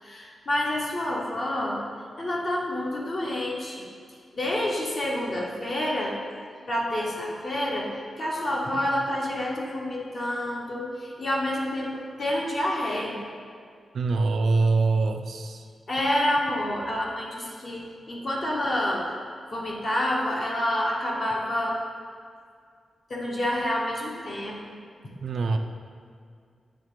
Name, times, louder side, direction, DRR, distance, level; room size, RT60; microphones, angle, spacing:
voice 1, 0.0-1.8 2.2-3.8 4.3-6.2 6.7-13.2 15.9-19.1 19.5-21.8 23.1-24.8 25.0-25.1, left 1 dB, 45° left, -2 dB, 1.1 m, -28 dB
voice 2, 13.9-15.7 25.2-25.6, right 3 dB, 70° right, 6 dB, 0.4 m, -24 dB
7.3 x 3.6 x 5.0 m, 2.2 s
wide cardioid pair, 130°, 0 cm